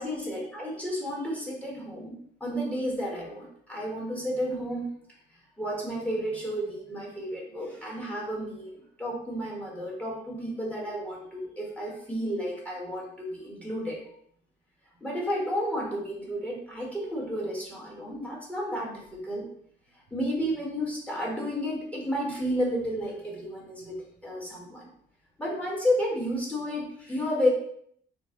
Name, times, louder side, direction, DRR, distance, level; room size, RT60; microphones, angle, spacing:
voice 1, 0.0-4.9 5.6-14.0 15.0-19.5 20.1-24.9 25.4-27.5, equal, 5° left, -3 dB, 1.2 m, -32 dB
4.0 x 2.2 x 3.6 m, 0.66 s
cardioid pair, 90°, 20 cm